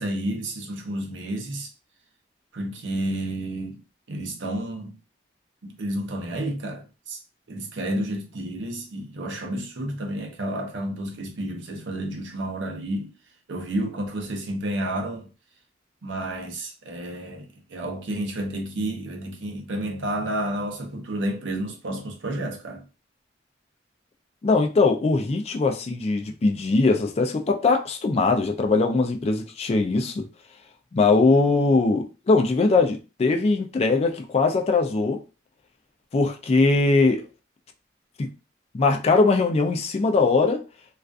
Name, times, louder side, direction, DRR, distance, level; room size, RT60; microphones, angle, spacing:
voice 1, 0.0-1.7 2.5-3.8 4.1-4.9 5.6-7.2 7.5-13.1 13.5-15.3 16.0-22.8, right 1 dB, 85° right, 0.6 m, -30 dB
voice 2, 24.4-30.2 30.9-35.2 36.1-37.2 38.2-38.3 38.7-40.6, left 3 dB, 35° left, 0.3 m, -21 dB
2.4 x 2.3 x 2.4 m
head